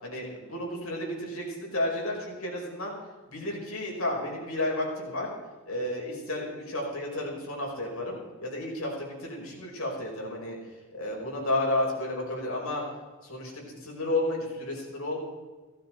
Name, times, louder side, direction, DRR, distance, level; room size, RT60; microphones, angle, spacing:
voice 1, 0.0-2.9 3.3-5.3 5.7-10.6 10.9-12.8 13.3-13.4 13.8-15.2, left 1 dB, 85° left, -1 dB, 5.4 m, -32 dB
16.5 x 14.5 x 4.7 m, 1.3 s
head